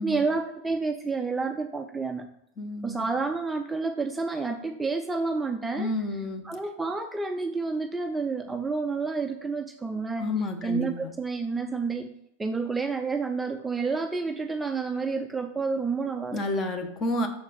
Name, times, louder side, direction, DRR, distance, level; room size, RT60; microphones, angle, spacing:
voice 1, 0.0-2.3 2.8-5.9 6.4-10.3 10.6-12.1 12.4-16.4, right 4 dB, 10° right, 6 dB, 0.4 m, -29 dB
voice 2, 2.6-3.1 5.8-6.4 10.2-11.1 16.3-17.3, left 2 dB, 25° left, 5 dB, 1.1 m, -30 dB
6.4 x 4.4 x 6.3 m, 0.81 s
figure-of-eight pair, 90°, 0 cm